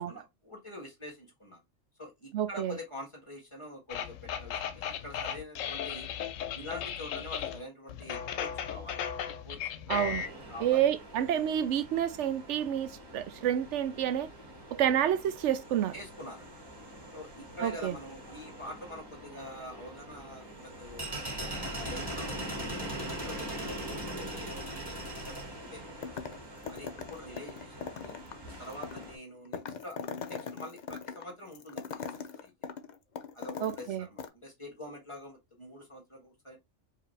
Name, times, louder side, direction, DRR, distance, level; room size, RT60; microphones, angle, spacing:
voice 1, 0.0-1.6 2.0-6.1 6.5-9.0 9.4-9.6 10.5-10.8 15.9-16.5 17.1-21.2 21.7-24.8 25.1-26.1 26.7-28.2 28.6-30.0 30.3-32.7 33.3-36.6, left 1 dB, 25° left, 1.8 m, -46 dB
voice 2, 2.3-2.8 9.9-10.2 10.6-14.3 14.7-15.9 17.6-17.9 33.6-34.1, right 10 dB, 75° right, 0.9 m, -29 dB
sound 1, 3.9-7.6 7.9-10.3, left 8 dB, 85° left, 1.0 m, -36 dB
sound 2, 9.9-29.2, right 1 dB, 20° right, 1.4 m, -42 dB
sound 3, 26.0-26.4 26.7-33.9 34.2-34.3, left 6 dB, 50° left, 0.6 m, -40 dB
4.9 x 2.8 x 3.1 m
omnidirectional pair, 1.3 m